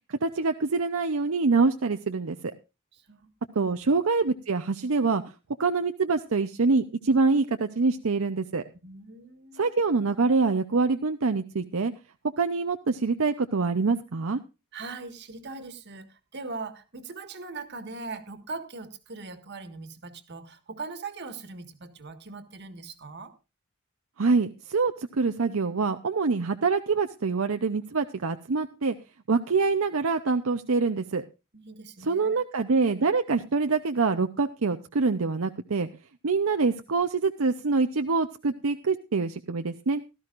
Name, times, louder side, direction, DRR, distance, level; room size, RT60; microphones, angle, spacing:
voice 1, 0.1-2.5 3.6-5.2 5.6-8.6 9.6-11.9 12.4-14.4 24.2-29.0 29.3-31.2 32.0-35.9 36.2-40.0, right 4 dB, 75° right, 7 dB, 0.7 m, -25 dB
voice 2, 2.9-3.3 3.6-3.7 8.8-9.7 14.7-23.3 31.5-32.4, right 3 dB, 55° right, 9 dB, 1.7 m, -40 dB
17.5 x 13.5 x 2.5 m, 0.28 s
head